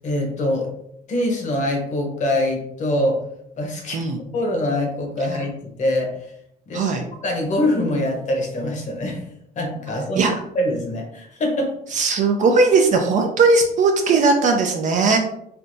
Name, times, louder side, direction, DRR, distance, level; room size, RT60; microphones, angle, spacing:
voice 1, 0.0-0.7 1.1-3.2 3.6-4.0 4.3-6.1 6.7-6.9 7.2-9.2 9.6-11.7, left 1 dB, 45° left, 2 dB, 0.9 m, -24 dB
voice 2, 11.9-15.2, right 4 dB, 50° right, 3 dB, 0.4 m, -18 dB
3.3 x 2.6 x 2.6 m, 0.75 s
cardioid pair, 110°, 17 cm